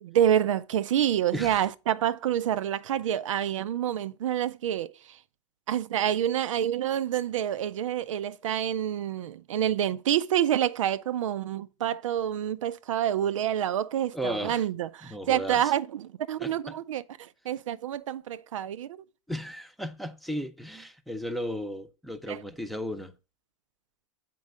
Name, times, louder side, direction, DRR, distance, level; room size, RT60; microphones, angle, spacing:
voice 1, 0.0-4.9 5.7-19.0 22.3-22.4, right 10 dB, 85° right, 0.6 m, -28 dB
voice 2, 1.3-1.7 14.1-14.7 15.0-15.7 16.4-16.8 19.3-23.1, equal, ahead, 0.8 m, -35 dB
7.5 x 4.6 x 5.1 m
hypercardioid pair, 120°, 16 cm